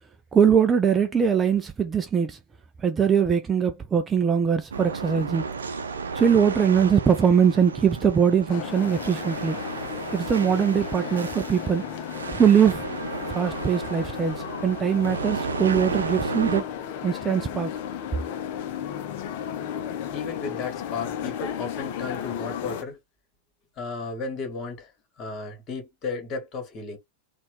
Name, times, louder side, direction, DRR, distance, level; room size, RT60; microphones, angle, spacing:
voice 1, 0.3-2.4 2.8-5.5 6.1-9.6 10.1-11.8 12.3-12.9 13.3-16.6 17.0-17.7, right 7 dB, 20° right, 0.5 m, -22 dB
sound 1, 4.7-16.6, right 5 dB, 70° right, 0.6 m, -33 dB
sound 2, 8.5-22.8, left 9 dB, 50° left, 0.7 m, -34 dB
voice 2, 20.1-23.0 23.8-24.9 25.2-27.0, left 4 dB, 30° left, 1.9 m, -34 dB
4.1 x 2.5 x 3.2 m
figure-of-eight pair, 90°, 0 cm